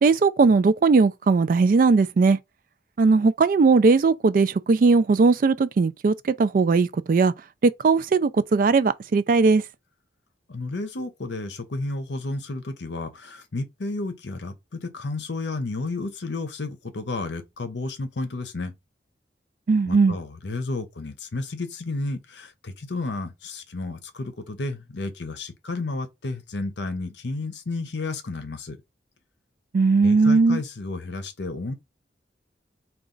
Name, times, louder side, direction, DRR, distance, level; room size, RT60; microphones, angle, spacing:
voice 1, 0.0-2.4 3.0-7.3 7.6-9.6 19.7-20.2 29.7-30.6, right 4 dB, 50° right, 0.3 m, -19 dB
voice 2, 10.5-18.7 19.8-28.8 30.0-31.7, left 3 dB, 75° left, 0.7 m, -32 dB
4.0 x 2.3 x 3.8 m
head